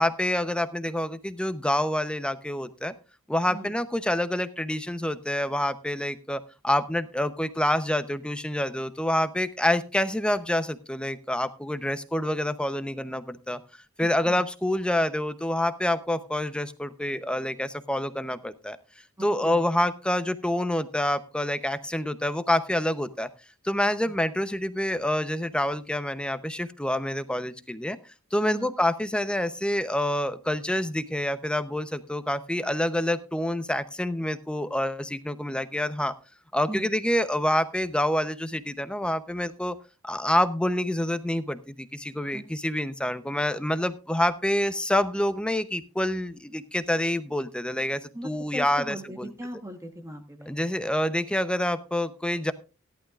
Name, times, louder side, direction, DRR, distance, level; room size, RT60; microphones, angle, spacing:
voice 1, 0.0-2.9 3.3-13.6 14.0-18.8 19.2-23.3 23.6-28.0 28.3-36.1 36.5-39.7 40.0-49.3 50.5-52.5, left 1 dB, 5° left, 11 dB, 0.8 m, -27 dB
voice 2, 14.0-14.4 19.2-19.6 28.4-28.7 36.7-36.9 42.3-42.4 48.1-50.5, right 1 dB, 15° right, 4 dB, 1.2 m, -39 dB
17.0 x 11.5 x 2.5 m, 0.31 s
head